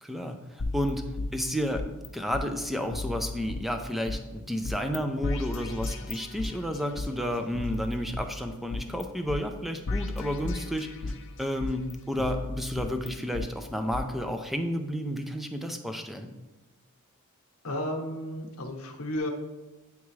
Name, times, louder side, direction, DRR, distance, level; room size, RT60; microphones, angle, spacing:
voice 1, 0.0-11.1 11.4-16.3, equal, ahead, 6 dB, 0.4 m, -31 dB
sound 1, 0.6-2.1 2.3-2.4 2.9-4.2 4.6-5.0 5.2-7.1 7.5-9.0 9.3-9.4 9.9-11.2 11.6-13.4 13.9-14.0, left 2 dB, 60° left, 0.6 m, -34 dB
voice 2, 17.6-19.3, left 1 dB, 75° left, 2 dB, 0.9 m, -33 dB
9.3 x 3.5 x 3.2 m, 1.1 s
head